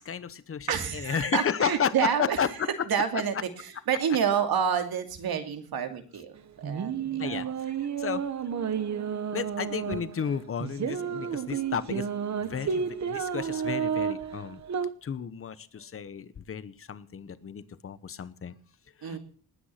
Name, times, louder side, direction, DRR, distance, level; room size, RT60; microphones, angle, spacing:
voice 1, 0.0-2.7 7.2-8.3 9.3-12.1 12.4-14.6 15.0-18.6 19.0-19.2, left 7 dB, 35° left, 15 dB, 0.9 m, -33 dB
voice 2, 0.7-2.4 2.9-7.5 19.0-19.2, right 7 dB, 75° right, 6 dB, 2.7 m, -29 dB
sound 1, 6.4-14.9, right 7 dB, 50° right, 1.1 m, -31 dB
20.0 x 9.5 x 5.8 m, 0.43 s
wide cardioid pair, 180°, 37 cm